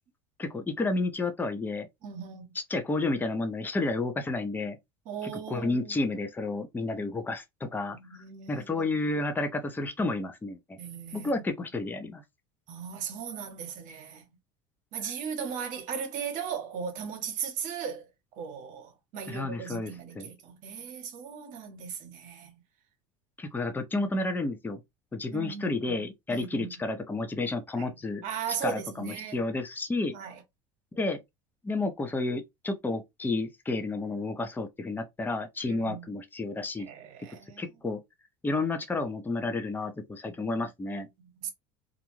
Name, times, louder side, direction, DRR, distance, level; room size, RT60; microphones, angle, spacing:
voice 1, 0.4-1.9 2.7-4.8 5.2-8.0 8.5-10.8 11.1-12.2 19.3-20.3 23.4-24.8 25.1-28.2 28.6-30.1 30.9-31.2 31.6-36.9 37.6-38.0 38.4-41.1, left 2 dB, 10° left, 0.6 m, -31 dB
voice 2, 2.0-2.5 5.1-6.0 7.9-8.9 10.8-11.4 12.7-14.3 14.9-18.1 18.3-22.6 25.3-26.7 27.8-27.9 28.2-29.4 30.1-30.4 35.6-36.1 36.8-37.7 40.6-40.7 41.2-41.5, right 7 dB, 55° right, 1.0 m, -38 dB
2.5 x 2.2 x 3.1 m
supercardioid pair, 95°, 16 cm